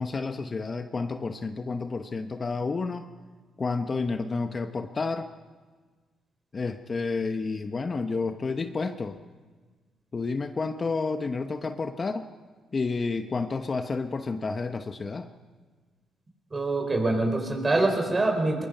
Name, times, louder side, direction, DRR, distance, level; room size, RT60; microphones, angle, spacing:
voice 1, 0.0-3.1 3.6-5.3 6.5-9.2 10.1-12.3 12.7-15.3, left 4 dB, 35° left, 8 dB, 0.9 m, -30 dB
voice 2, 16.5-18.6, right 2 dB, 25° right, 4 dB, 4.9 m, -25 dB
22.5 x 21.5 x 5.6 m, 1.4 s
cardioid pair, 90°, 0 cm